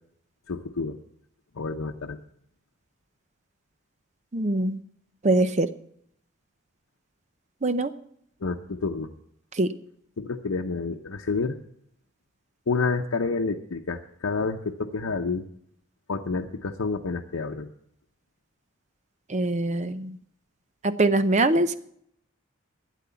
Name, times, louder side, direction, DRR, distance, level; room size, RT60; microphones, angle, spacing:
voice 1, 0.5-1.0 1.5-2.2 8.4-9.1 10.2-11.6 12.7-15.5 16.1-17.7, left 4 dB, 90° left, 3 dB, 0.7 m, -29 dB
voice 2, 4.3-4.8 5.2-5.7 7.6-7.9 9.6-9.7 19.3-20.2 20.8-21.8, right 2 dB, 35° right, 12 dB, 0.6 m, -23 dB
12.5 x 9.2 x 6.9 m, 0.68 s
head